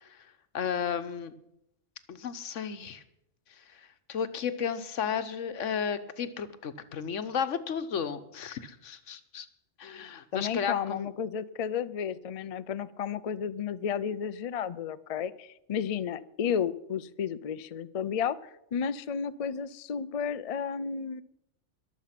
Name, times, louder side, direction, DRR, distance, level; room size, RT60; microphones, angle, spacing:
voice 1, 0.5-1.3 2.1-3.0 3.5-9.5 9.8-11.1, left 7 dB, 85° left, 12 dB, 1.3 m, -33 dB
voice 2, 10.3-18.4 18.7-21.2, left 7 dB, 50° left, 15 dB, 0.4 m, -32 dB
21.5 x 7.3 x 5.9 m, 0.82 s
omnidirectional pair, 1.2 m